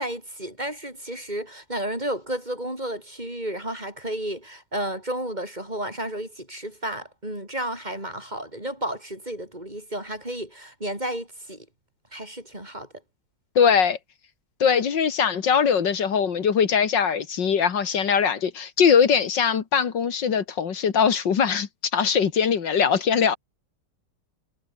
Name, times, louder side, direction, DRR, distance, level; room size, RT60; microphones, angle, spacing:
voice 1, 0.0-11.7 12.1-12.9, right 1 dB, 20° right, 6.6 m, -32 dB
voice 2, 13.6-14.0 14.6-23.4, left 7 dB, 80° left, 2.4 m, -21 dB
omnidirectional pair, 1.9 m